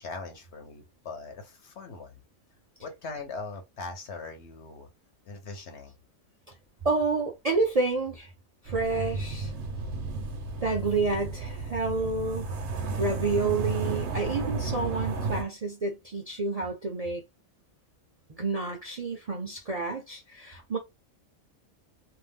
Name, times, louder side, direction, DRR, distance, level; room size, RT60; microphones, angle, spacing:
voice 1, 0.0-2.2 2.8-4.9 5.2-5.9 15.1-15.2, left 3 dB, 65° left, 1.1 m, -41 dB
voice 2, 6.8-8.3 8.6-9.5 10.6-12.5 13.0-17.2 18.3-20.8, right 3 dB, 50° right, 0.4 m, -29 dB
sound 1, 8.7-15.4, right 3 dB, 65° right, 0.9 m, -33 dB
2.6 x 2.0 x 3.3 m
omnidirectional pair, 1.3 m